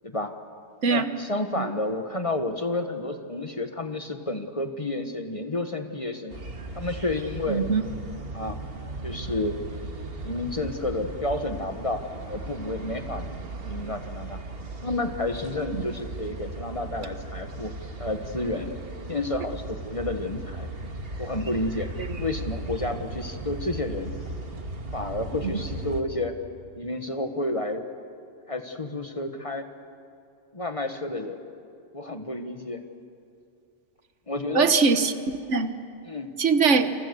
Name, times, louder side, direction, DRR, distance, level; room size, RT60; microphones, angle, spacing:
voice 1, 0.9-6.4 6.8-7.6 8.3-8.6 9.0-9.7 10.2-12.0 12.3-13.2 13.6-14.4 14.8-17.7 18.0-18.7 19.1-20.7 21.2-21.9 22.2-24.1 24.9-26.3 26.8-27.8 28.5-29.7 30.5-31.4 31.9-32.8 34.3-34.7 36.0-36.3, left 2 dB, 30° left, 6 dB, 1.5 m, -30 dB
sound 1, 6.3-26.0, right 2 dB, 55° right, 2.0 m, -37 dB
voice 2, 7.5-7.8 15.7-15.8 22.0-22.2 34.5-35.7 36.4-36.9, right 5 dB, 85° right, 10 dB, 1.5 m, -22 dB
28.5 x 27.5 x 7.0 m, 2.4 s
omnidirectional pair, 1.2 m